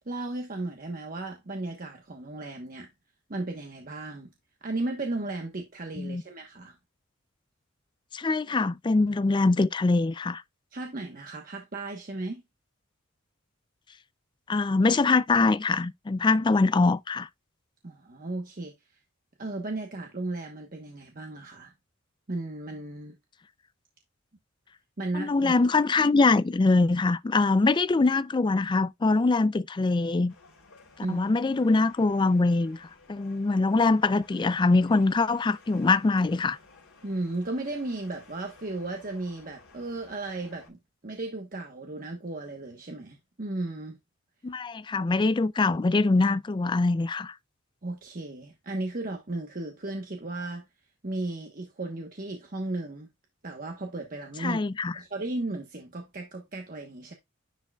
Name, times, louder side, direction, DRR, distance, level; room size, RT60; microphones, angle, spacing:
voice 1, 0.1-2.9 3.3-4.3 4.6-6.7 10.7-12.4 17.8-18.7 19.4-21.7 22.3-23.1 25.0-25.6 31.0-31.2 37.0-44.0 47.8-50.6 51.0-53.1 53.4-54.6 54.9-57.1, right 2 dB, 40° right, 1.1 m, -35 dB
voice 2, 8.1-10.4 14.5-17.3 25.1-30.3 31.1-36.6 44.4-47.3 54.4-54.9, left 3 dB, 20° left, 0.3 m, -23 dB
sound 1, 30.3-40.7, left 3 dB, 90° left, 3.2 m, -55 dB
10.5 x 4.8 x 2.3 m
head